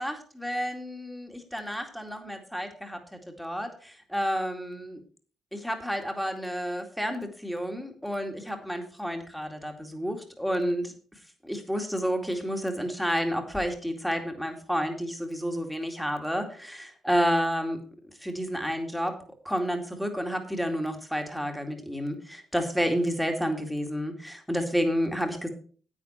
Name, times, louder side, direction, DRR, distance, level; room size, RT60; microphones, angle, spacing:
voice 1, 0.0-5.0 5.5-10.9 11.4-17.8 18.2-19.1 19.4-25.5, equal, ahead, 4 dB, 2.3 m, -30 dB
9.8 x 8.9 x 4.4 m, 0.43 s
cardioid pair, 90°, 0 cm